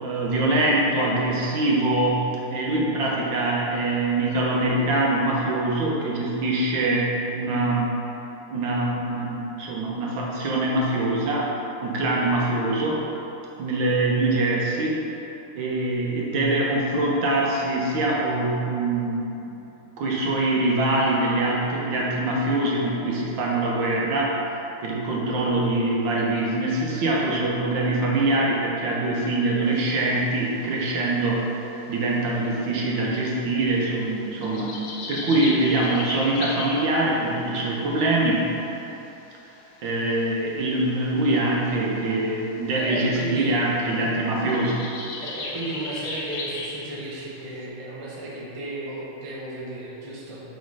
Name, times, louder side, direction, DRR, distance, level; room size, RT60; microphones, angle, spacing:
voice 1, 0.0-7.9 8.5-11.5 11.8-13.0 13.6-15.0 15.5-19.6 20.0-24.4 24.8-31.4 31.9-34.8 35.1-38.5 39.8-44.9, right 2 dB, 70° right, -3 dB, 1.5 m, -24 dB
sound 1, 29.8-30.4 30.9-31.0 31.2-32.8 33.1-33.9 34.2-37.5 39.5-41.3 42.2-42.3 42.4-42.5 42.8-47.6, left 3 dB, 85° left, 1.7 m, -36 dB
voice 2, 42.7-43.6 45.2-50.4, right 2 dB, 55° right, -6 dB, 0.3 m, -34 dB
5.0 x 4.2 x 4.7 m, 3.0 s
omnidirectional pair, 2.3 m